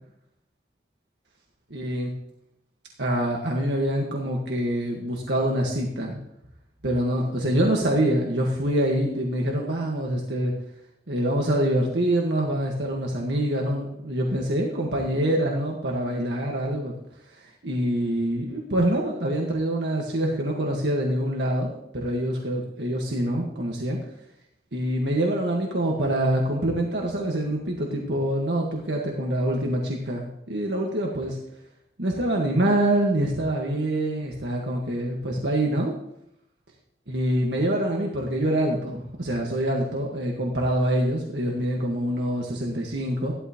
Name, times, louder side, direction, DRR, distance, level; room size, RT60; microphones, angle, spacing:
voice 1, 1.7-2.1 3.0-6.2 6.8-10.5 11.1-16.9 17.4-24.0 24.7-31.4 32.0-35.9 37.1-43.3, right 1 dB, 80° right, -1 dB, 1.7 m, -25 dB
15.0 x 12.0 x 3.1 m, 0.78 s
head